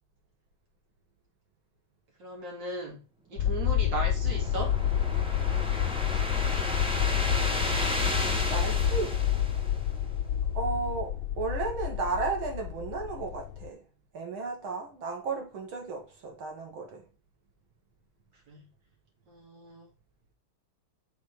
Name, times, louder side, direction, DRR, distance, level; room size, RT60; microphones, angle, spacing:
voice 1, 2.2-3.0 3.3-4.8 18.5-18.7 19.3-19.9, right 2 dB, 65° right, 3.4 m, -37 dB
sound 1, 3.4-13.7, left 10 dB, 80° left, 1.3 m, -29 dB
sound 2, 3.7-10.2, equal, 5° right, 0.7 m, -34 dB
voice 2, 8.5-9.2 10.5-13.8 14.1-17.0, right 4 dB, 90° right, 2.5 m, -34 dB
5.7 x 4.0 x 5.8 m
omnidirectional pair, 2.2 m